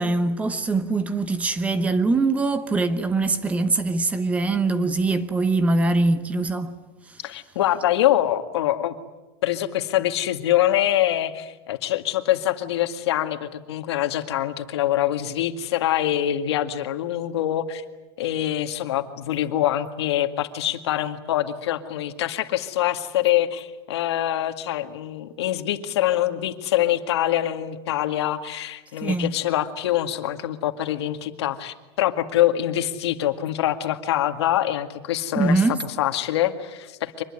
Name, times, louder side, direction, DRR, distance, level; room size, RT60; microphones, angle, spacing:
voice 1, 0.0-6.7 29.0-29.3 35.3-35.8, right 3 dB, 10° right, 0.9 m, -22 dB
voice 2, 7.2-9.0 9.4-17.8 18.2-35.6 36.0-37.2, left 12 dB, 90° left, 2.0 m, -24 dB
25.0 x 20.5 x 9.8 m
supercardioid pair, 175°, 13 cm